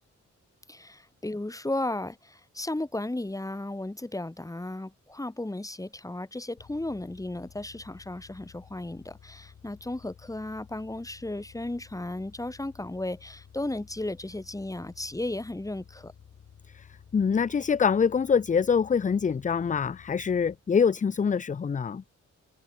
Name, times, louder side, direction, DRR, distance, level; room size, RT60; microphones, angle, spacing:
voice 1, 0.7-16.1, left 2 dB, 10° left, 1.5 m, -35 dB
sound 1, 6.6-20.6, left 7 dB, 70° left, 5.7 m, -53 dB
voice 2, 17.1-22.0, left 6 dB, 25° left, 0.4 m, -25 dB
wide cardioid pair, 100°, 29 cm